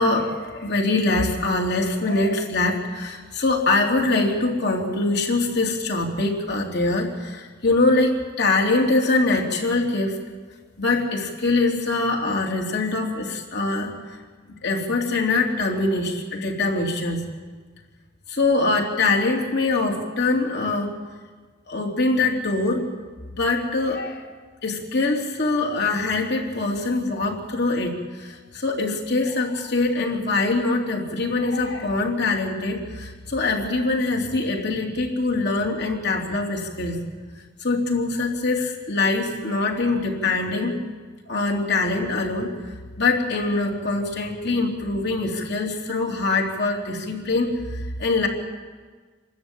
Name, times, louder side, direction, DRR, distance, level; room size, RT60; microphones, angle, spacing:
voice 1, 0.0-10.2 10.8-14.2 14.6-17.2 18.3-21.0 21.7-22.9 23.4-24.3 24.6-37.0 37.6-40.8 41.3-42.5 43.0-48.3, left 3 dB, 55° left, 1 dB, 3.6 m, -23 dB
27.0 x 13.5 x 9.1 m, 1.4 s
head